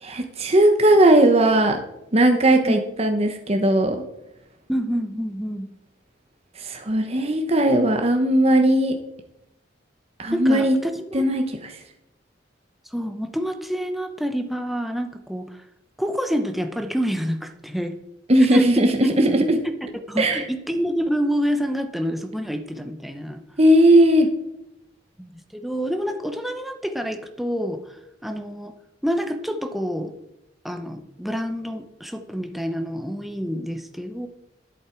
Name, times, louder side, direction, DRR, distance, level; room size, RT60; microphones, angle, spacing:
voice 1, 0.0-1.8 2.1-4.0 6.6-8.9 10.2-10.8 11.1-11.7 18.3-19.6 20.2-20.4 23.6-24.3, right 1 dB, 35° right, 5 dB, 1.0 m, -18 dB
voice 2, 4.7-5.7 10.3-10.9 11.2-11.3 12.9-15.6 16.0-18.0 18.5-18.8 19.6-19.7 20.1-23.4 25.2-28.7 29.0-30.1 30.6-34.3, equal, ahead, 5 dB, 0.9 m, -27 dB
12.0 x 11.0 x 4.6 m, 0.87 s
head